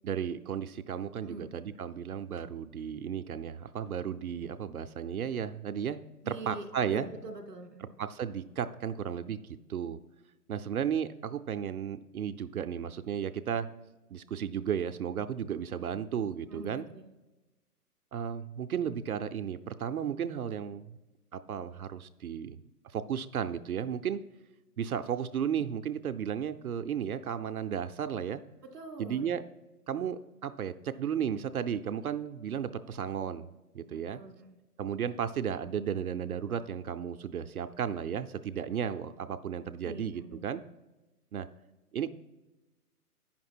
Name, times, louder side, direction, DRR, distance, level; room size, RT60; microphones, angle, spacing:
voice 1, 0.0-7.1 7.8-9.4 9.7-10.0 10.5-13.7 14.1-16.9 18.1-21.0 21.3-22.6 22.9-24.2 24.8-28.4 29.0-29.4 29.9-33.5 33.7-34.2 34.8-40.6 41.3-41.5 41.9-42.1, right 8 dB, 65° right, 9 dB, 0.6 m, -34 dB
voice 2, 6.2-7.9 16.5-17.1 28.6-29.3 33.9-34.6 39.8-40.4, right 2 dB, 10° right, -5 dB, 0.5 m, -44 dB
9.0 x 5.9 x 4.4 m, 1.1 s
hypercardioid pair, 150°, 47 cm